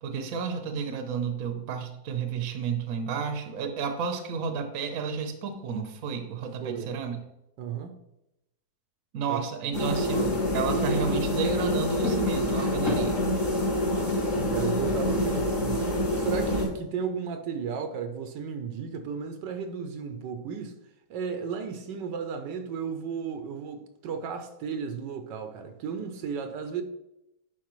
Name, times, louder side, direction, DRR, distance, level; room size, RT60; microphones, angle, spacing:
voice 1, 0.0-7.2 9.1-13.2, right 6 dB, 55° right, 1.1 m, -31 dB
voice 2, 6.6-6.9 7.6-7.9 9.3-9.4 14.2-20.8 21.1-26.8, right 6 dB, 80° right, 1.4 m, -34 dB
sound 1, 9.7-16.7, left 1 dB, 45° left, 3.3 m, -26 dB
10.5 x 4.6 x 3.1 m
omnidirectional pair, 1.9 m